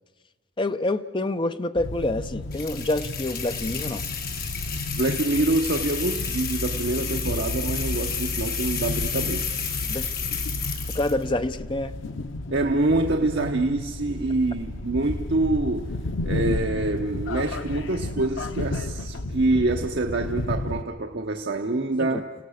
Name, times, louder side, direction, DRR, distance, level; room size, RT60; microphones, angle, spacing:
voice 1, 0.6-4.0 9.9-10.1 10.9-11.9 22.0-22.2, left 2 dB, 25° left, 11 dB, 0.6 m, -27 dB
sound 1, 1.8-20.8, left 1 dB, 90° left, 0.7 m, -32 dB
sound 2, 2.5-11.2, left 7 dB, 50° left, 2.2 m, -32 dB
voice 2, 4.9-9.5 12.5-15.9 16.2-22.3, right 2 dB, 60° right, 4 dB, 0.9 m, -26 dB
28.0 x 17.0 x 6.5 m, 1.4 s
head